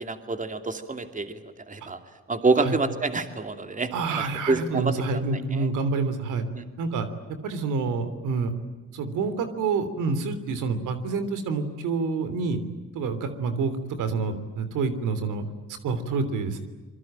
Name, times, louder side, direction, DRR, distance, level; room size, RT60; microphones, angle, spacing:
voice 1, 0.0-2.0 2.3-4.9 5.5-5.7 6.5-6.6, right 3 dB, 25° right, 7 dB, 2.8 m, -27 dB
voice 2, 3.9-6.4 6.8-7.1 7.4-8.5 8.9-12.6 12.9-15.4 15.8-16.6, right 4 dB, 85° right, 11 dB, 3.4 m, -27 dB
26.5 x 23.0 x 9.0 m, 1.3 s
cardioid pair, 90°, 30 cm